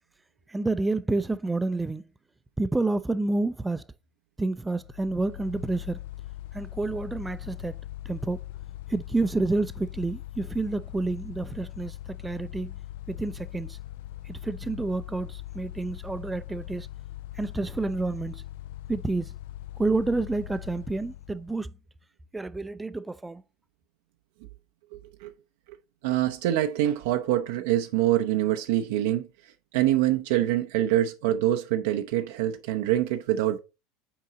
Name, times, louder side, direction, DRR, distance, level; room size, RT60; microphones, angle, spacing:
voice 1, 0.5-2.0 2.6-3.8 4.4-6.0 6.5-7.8 8.1-8.4 8.9-12.7 13.1-13.8 14.3-16.9 17.4-18.4 18.9-19.3 19.8-21.7 22.3-23.4, right 2 dB, 10° right, 0.4 m, -29 dB
Mechanical fan, 4.7-21.6, left 15 dB, 65° left, 0.3 m, -41 dB
voice 2, 24.9-25.3 26.0-29.3 29.7-33.6, right 13 dB, 65° right, 0.5 m, -25 dB
5.8 x 4.6 x 3.8 m
figure-of-eight pair, 75°, 0 cm